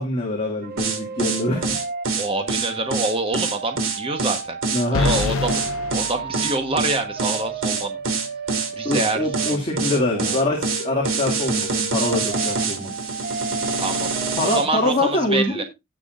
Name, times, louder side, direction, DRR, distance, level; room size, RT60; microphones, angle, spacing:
voice 1, 0.0-1.7 4.7-5.1 8.8-12.9 14.4-15.6, left 1 dB, 30° left, -2 dB, 2.3 m, -24 dB
sound 1, 0.6-15.0, right 4 dB, 45° right, 0.6 m, -33 dB
sound 2, 0.8-14.6, right 4 dB, 70° right, 2.3 m, -25 dB
voice 2, 2.2-4.6 4.9-5.6 5.9-8.0 8.8-9.2 9.5-9.6 9.9-10.4 13.8-15.6, right 2 dB, 25° right, 6 dB, 1.2 m, -26 dB
sound 3, 4.9-7.1, left 4 dB, 70° left, 0.5 m, -27 dB
17.5 x 6.1 x 2.5 m, 0.23 s
head